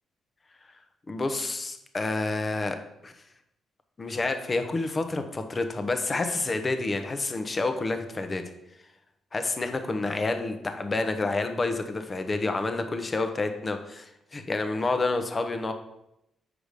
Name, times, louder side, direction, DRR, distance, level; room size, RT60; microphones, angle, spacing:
voice 1, 1.1-2.8 3.0-3.1 4.0-8.4 9.3-15.7, left 3 dB, 30° left, 7 dB, 1.0 m, -29 dB
6.8 x 4.9 x 5.0 m, 0.84 s
cardioid pair, 70°, 0 cm